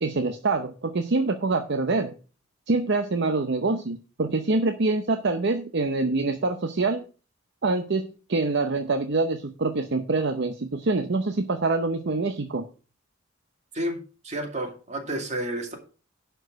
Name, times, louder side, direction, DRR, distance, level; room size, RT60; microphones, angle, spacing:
voice 1, 0.0-2.1 2.7-7.0 7.6-12.6, right 3 dB, 60° right, 6 dB, 0.7 m, -25 dB
voice 2, 13.7-15.8, right 1 dB, 35° right, 3 dB, 2.3 m, -31 dB
11.0 x 4.6 x 6.3 m, 0.36 s
head